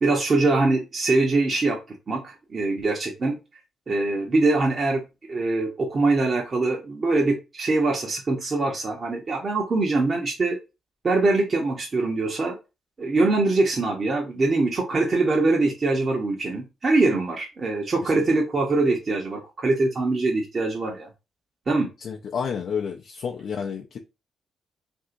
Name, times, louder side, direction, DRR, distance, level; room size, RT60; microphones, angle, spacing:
voice 1, 0.0-1.8 2.1-3.3 3.9-5.0 5.3-10.6 11.0-12.6 13.0-21.1 21.7-21.9, right 3 dB, 45° right, 0.8 m, -23 dB
voice 2, 22.0-24.0, left 6 dB, 60° left, 0.4 m, -30 dB
2.7 x 2.7 x 2.5 m
hypercardioid pair, 40°, 0 cm